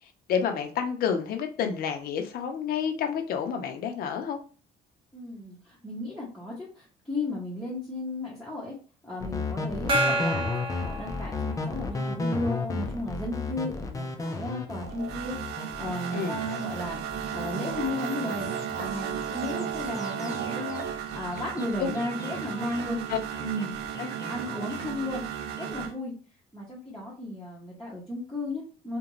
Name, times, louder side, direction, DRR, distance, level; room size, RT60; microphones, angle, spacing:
voice 1, 0.3-4.4 16.1-16.4 21.8-21.9 23.1-23.2 24.0-24.1, left 7 dB, 65° left, 5 dB, 0.6 m, -29 dB
voice 2, 5.1-8.8 9.0-10.5 10.8-17.0 17.3-23.0 23.4-23.8 24.3-25.2 25.6-26.1 26.5-29.0, left 1 dB, ahead, -8 dB, 0.8 m, -34 dB
sound 1, 9.2-25.9, left 3 dB, 20° left, 0.5 m, -35 dB
Gong, 9.9-11.9, right 1 dB, 30° right, 0.7 m, -29 dB
sound 2, 14.8-25.9, right 8 dB, 75° right, 0.5 m, -34 dB
2.5 x 2.2 x 3.0 m, 0.39 s
cardioid pair, 110°, 17 cm